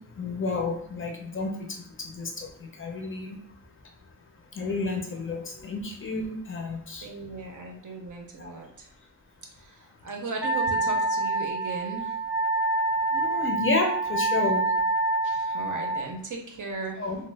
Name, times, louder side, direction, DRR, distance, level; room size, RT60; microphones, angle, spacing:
voice 1, 0.2-3.4 4.5-7.1 8.4-8.5 13.1-14.7 17.0-17.2, left 3 dB, 30° left, 2 dB, 0.6 m, -31 dB
voice 2, 7.0-8.9 9.5-12.2 15.2-17.1, right 3 dB, 50° right, 1 dB, 0.6 m, -37 dB
Wind instrument woodwind instrument, 10.4-16.0, right 3 dB, 5° right, 0.7 m, -26 dB
3.0 x 2.0 x 3.2 m, 0.68 s
wide cardioid pair, 115°, 41 cm